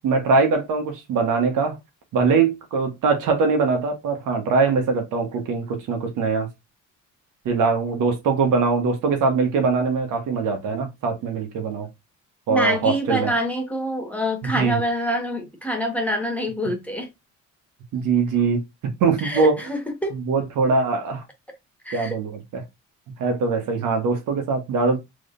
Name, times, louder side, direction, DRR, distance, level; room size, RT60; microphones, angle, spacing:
voice 1, 0.0-1.8 2.1-6.5 7.4-11.9 12.5-13.3 14.5-14.8 17.9-19.7 20.1-21.2 21.9-22.6 23.2-25.0, right 4 dB, 85° right, 1.4 m, -22 dB
voice 2, 12.5-17.1 19.2-20.2 21.8-22.2, equal, 5° left, 1.5 m, -26 dB
4.8 x 3.3 x 2.6 m
cardioid pair, 90°, 30 cm